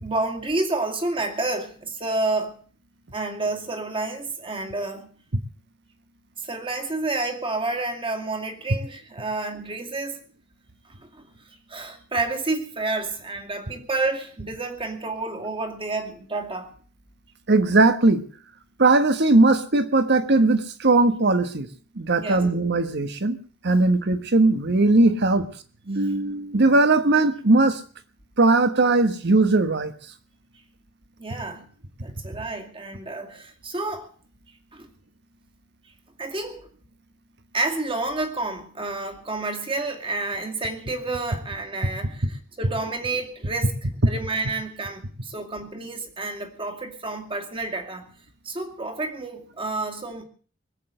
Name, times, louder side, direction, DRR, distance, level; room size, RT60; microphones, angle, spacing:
voice 1, 0.0-2.6 3.1-5.1 6.4-10.2 11.1-11.3 11.7-16.7 22.2-22.5 31.2-31.7 32.0-34.1 34.7-34.9 36.2-36.7 37.5-43.7 44.1-48.1 48.4-50.2, right 2 dB, 25° right, 2.4 m, -29 dB
voice 2, 17.5-18.2 18.8-21.7 21.9-23.4 23.6-25.5 25.9-27.8 28.4-29.9, right 2 dB, 55° right, 1.3 m, -19 dB
20.5 x 8.0 x 7.7 m
head